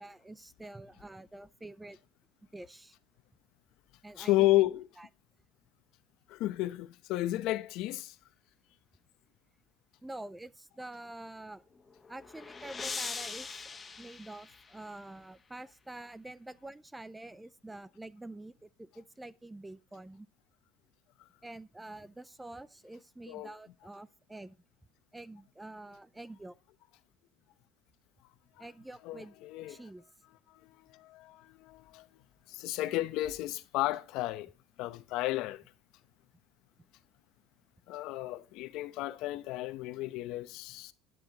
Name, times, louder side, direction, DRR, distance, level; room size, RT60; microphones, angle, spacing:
voice 1, 0.0-2.0 2.5-3.0 4.0-4.7 5.0-5.1 10.0-11.6 12.1-20.3 21.4-24.6 25.1-26.5 28.6-30.0, right 2 dB, 10° right, 0.4 m, -47 dB
voice 2, 4.2-4.9 6.3-8.2 23.3-23.5 28.6-28.7 29.0-29.8 30.5-32.1 32.5-34.5 34.8-35.6 37.9-40.9, left 16 dB, 65° left, 0.8 m, -32 dB
sound 1, 11.7-15.1, left 4 dB, 20° left, 0.9 m, -42 dB
11.5 x 9.3 x 2.9 m
cardioid pair, 130°, 0 cm